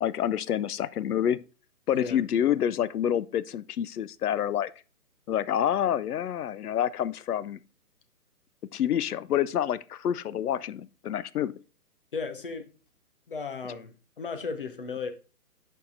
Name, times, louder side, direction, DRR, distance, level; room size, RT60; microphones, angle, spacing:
voice 1, 0.0-1.4 1.9-4.7 5.3-7.6 8.7-11.5, left 10 dB, 75° left, 0.6 m, -27 dB
voice 2, 12.1-12.7 13.3-15.1, left 4 dB, 35° left, 0.7 m, -35 dB
11.5 x 4.7 x 2.5 m
hypercardioid pair, 165°, 46 cm